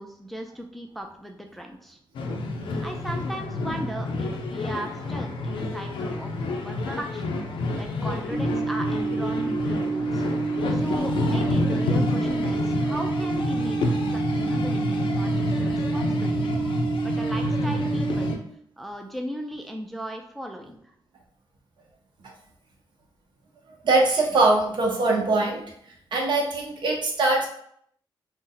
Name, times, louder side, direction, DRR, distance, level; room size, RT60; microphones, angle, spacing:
voice 1, 0.0-2.0 2.8-7.4 7.7-10.3 10.7-18.4 18.8-20.8, equal, ahead, 3 dB, 0.3 m, -37 dB
sound 1, 2.1-18.4, left 2 dB, 80° left, 0.5 m, -28 dB
sound 2, 8.3-18.3, right 4 dB, 25° right, 1.0 m, -28 dB
voice 2, 23.8-25.6 26.1-27.5, right 2 dB, 65° right, -1 dB, 0.8 m, -22 dB
2.7 x 2.0 x 3.8 m, 0.67 s
wide cardioid pair, 110°, 9 cm